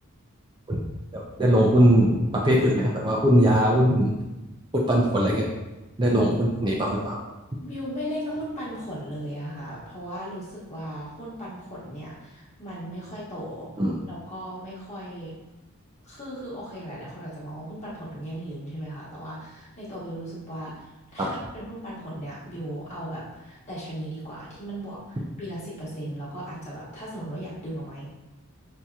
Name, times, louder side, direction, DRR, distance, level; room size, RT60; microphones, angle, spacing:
voice 1, 1.1-4.1 4.7-5.4 6.0-7.2 13.8-13.9 21.2-21.3, equal, 20° right, -3 dB, 0.4 m, -20 dB
voice 2, 7.6-13.7 14.1-15.3 16.0-20.8 21.1-28.1, equal, 30° left, -7 dB, 1.2 m, -37 dB
5.6 x 2.7 x 2.4 m, 1.1 s
head